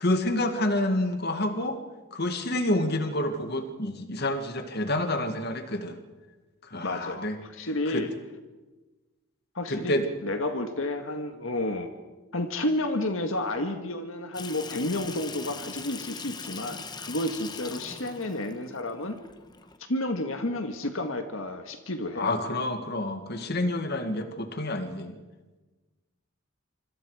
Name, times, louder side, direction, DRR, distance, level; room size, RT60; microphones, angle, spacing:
voice 1, 0.0-1.8 2.1-6.0 6.7-7.4 7.9-8.1 9.7-10.0 22.2-25.1, left 1 dB, 50° left, 7 dB, 1.9 m, -28 dB
voice 2, 6.8-8.1 9.5-11.9 12.3-19.2 19.9-22.4, left 1 dB, 70° left, 6 dB, 1.7 m, -31 dB
Water tap faucet / Sink (filling or washing), 14.3-19.8, left 5 dB, 20° left, 1.1 m, -41 dB
26.0 x 25.5 x 4.9 m, 1.2 s
head